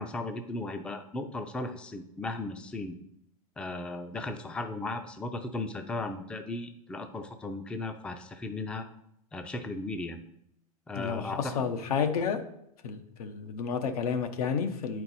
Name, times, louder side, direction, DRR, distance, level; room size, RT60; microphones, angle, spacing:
voice 1, 0.0-3.0 3.6-8.9 9.3-10.2 10.9-11.6, left 2 dB, 5° left, 7 dB, 0.4 m, -36 dB
voice 2, 11.0-12.4 12.8-15.0, left 6 dB, 80° left, 7 dB, 0.9 m, -31 dB
7.9 x 4.5 x 4.1 m, 0.76 s
hypercardioid pair, 125°, 19 cm